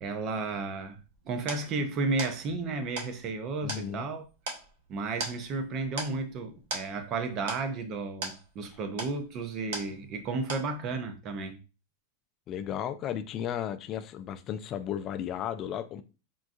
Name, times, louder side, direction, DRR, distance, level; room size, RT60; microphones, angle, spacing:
voice 1, 0.0-1.0 1.2-4.2 4.9-11.6, right 3 dB, 40° right, 0.6 m, -33 dB
sound 1, 0.8-10.2 10.5-11.1, right 3 dB, 65° right, 0.9 m, -40 dB
voice 2, 3.6-4.1 8.7-8.8 12.5-16.0, left 9 dB, 35° left, 0.3 m, -34 dB
3.7 x 2.3 x 2.5 m
hypercardioid pair, 120°, 0 cm